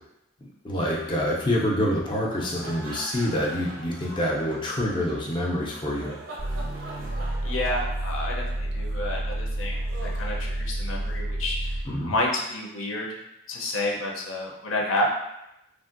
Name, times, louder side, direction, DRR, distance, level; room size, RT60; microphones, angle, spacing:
voice 1, 0.4-6.2 11.8-12.1, equal, 25° left, -4 dB, 0.4 m, -27 dB
sound 1, 2.1-11.2, right 2 dB, 85° right, 0.6 m, -43 dB
sound 2, 6.4-12.0, right 1 dB, 45° right, 0.3 m, -30 dB
voice 2, 7.4-11.8 12.1-13.1 13.5-15.1, left 1 dB, 80° left, -1 dB, 0.6 m, -30 dB
3.2 x 2.5 x 2.5 m, 0.86 s
head